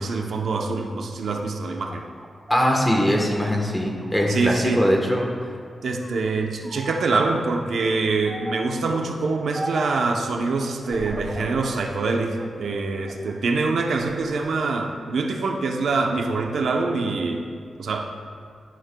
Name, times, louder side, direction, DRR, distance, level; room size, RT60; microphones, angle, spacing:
voice 1, 0.0-2.0 4.3-4.8 5.8-17.5 17.8-18.0, right 3 dB, 75° right, 2 dB, 0.7 m, -25 dB
sound 1, 1.7-5.0 5.3-6.2 6.6-7.3 8.3-8.8 9.5-10.1 10.8-11.9 12.4-13.3 13.8-14.5, right 1 dB, 10° right, 0.8 m, -38 dB
voice 2, 2.5-5.3, equal, 5° left, 0 dB, 1.2 m, -21 dB
11.5 x 11.0 x 2.3 m, 2.2 s
wide cardioid pair, 155°, 0 cm